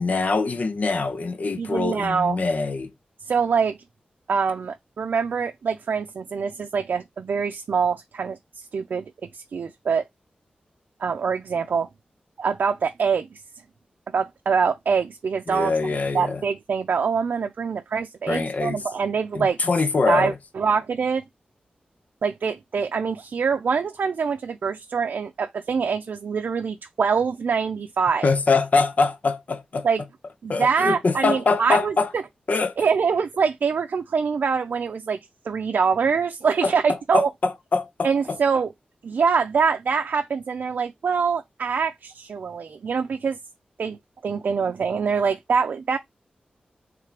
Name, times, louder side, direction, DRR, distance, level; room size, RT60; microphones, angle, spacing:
voice 1, 0.0-2.9 15.5-16.4 18.3-18.8 19.3-20.4 28.2-29.9 30.5-32.1 32.5-32.7 36.6-36.7 37.1-38.4, left 4 dB, 55° left, 0.7 m, -23 dB
voice 2, 1.6-2.4 3.2-3.8 4.3-10.0 11.0-11.9 12.4-13.4 14.1-15.7 16.1-19.6 20.1-21.2 22.2-28.3 29.8-30.0 30.4-31.9 32.8-35.2 35.4-37.3 38.0-38.7 39.0-43.4 43.8-44.0 44.2-46.0, right 5 dB, 75° right, 0.5 m, -24 dB
3.4 x 3.3 x 4.8 m
wide cardioid pair, 105°, 3 cm